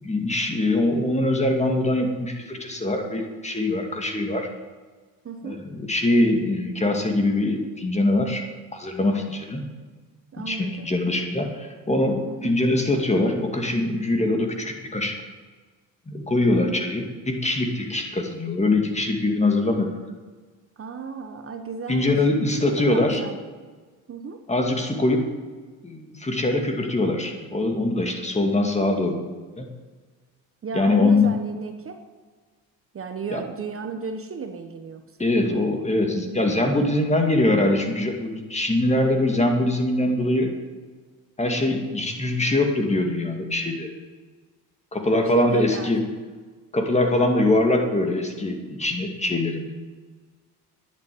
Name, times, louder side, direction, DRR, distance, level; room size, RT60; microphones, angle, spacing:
voice 1, 0.0-4.5 5.4-8.4 8.7-9.6 10.5-15.2 16.1-20.0 21.9-23.2 24.5-25.3 25.8-29.2 29.6-29.7 30.7-31.3 33.3-33.4 35.2-40.5 41.4-43.9 44.9-46.0 46.7-49.7, left 2 dB, 20° left, 3 dB, 2.3 m, -23 dB
voice 2, 5.2-5.6 10.3-10.9 12.3-12.6 16.5-16.9 20.8-22.2 22.6-23.4 24.1-24.4 30.6-32.0 32.9-35.0 45.1-45.9, right 5 dB, 35° right, 7 dB, 1.2 m, -34 dB
10.5 x 8.2 x 9.4 m, 1.4 s
supercardioid pair, 90°, 37 cm